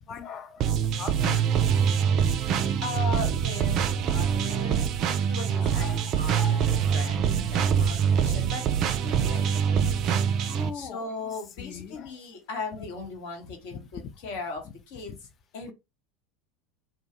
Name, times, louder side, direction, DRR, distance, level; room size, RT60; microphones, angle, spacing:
voice 1, 0.1-1.5 4.0-4.1 4.6-4.8 5.5-7.1 8.1-8.4 10.5-12.1 13.7-13.8, left 5 dB, 35° left, 0.5 m, -41 dB
sound 1, 0.6-10.7, right 8 dB, 45° right, 0.3 m, -24 dB
voice 2, 2.8-5.0 5.3-10.4 10.7-15.3 15.5-15.7, left 4 dB, 60° left, 1.0 m, -38 dB
2.2 x 2.2 x 2.8 m
figure-of-eight pair, 80°, 0 cm